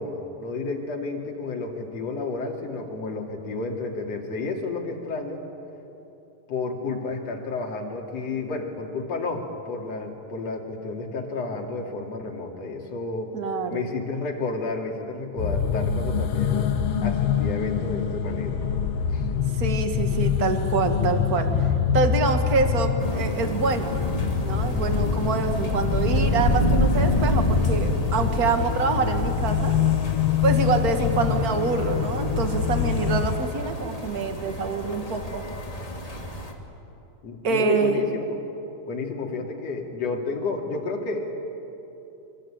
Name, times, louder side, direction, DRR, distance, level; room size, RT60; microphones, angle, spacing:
voice 1, 0.0-5.4 6.5-13.3 13.7-16.7 17.0-18.6 19.1-19.3 37.2-38.2 38.9-41.3, left 3 dB, 45° left, 0 dB, 3.7 m, -31 dB
voice 2, 13.3-13.8 19.6-21.5 21.9-24.0 24.4-29.7 30.4-35.4 37.4-38.0, right 4 dB, 40° right, 6 dB, 1.3 m, -26 dB
sound 1, 15.4-33.4, left 7 dB, 70° left, 1.4 m, -25 dB
sound 2, 23.0-36.5, left 1 dB, 15° left, 1.4 m, -28 dB
25.5 x 24.5 x 8.9 m, 2.9 s
omnidirectional pair, 4.2 m